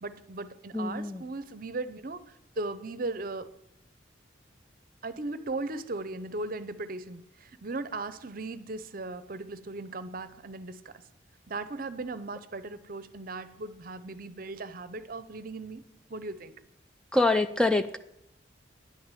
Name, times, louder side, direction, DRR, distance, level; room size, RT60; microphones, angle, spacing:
voice 1, 0.0-2.2 2.6-3.5 5.0-10.9 11.5-15.8 16.1-16.5, right 2 dB, 50° right, 0.7 m, -37 dB
voice 2, 0.7-1.2 17.1-18.0, left 2 dB, 5° left, 0.3 m, -25 dB
10.5 x 6.6 x 9.0 m
head